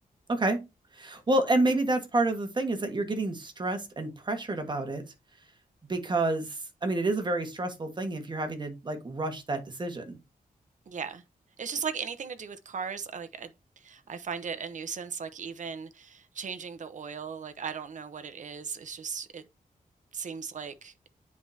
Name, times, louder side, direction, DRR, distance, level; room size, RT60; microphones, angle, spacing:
voice 1, 0.3-0.6 1.0-5.0 5.9-10.2, right 2 dB, 30° right, 1.5 m, -29 dB
voice 2, 10.9-11.2 11.6-19.4 20.1-20.9, right 6 dB, 55° right, 0.9 m, -37 dB
9.4 x 4.8 x 2.8 m
wide cardioid pair, 170°, 15 cm